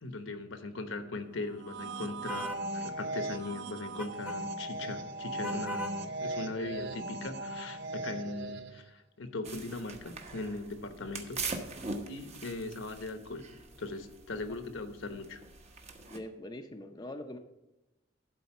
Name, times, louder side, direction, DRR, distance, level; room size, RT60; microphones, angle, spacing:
voice 1, 0.0-11.4 12.1-15.4, left 2 dB, 75° left, 8 dB, 1.0 m, -40 dB
sound 1, 1.5-8.9, right 2 dB, 60° right, 0.5 m, -38 dB
sound 2, 2.3-2.7 4.0-4.4 5.4-6.0, equal, 10° right, 1.0 m, -39 dB
sound 3, 9.4-16.2, right 3 dB, 35° right, 1.0 m, -43 dB
voice 2, 16.1-17.4, left 1 dB, 20° left, 5 dB, 0.6 m, -43 dB
12.0 x 4.0 x 7.0 m, 0.99 s
head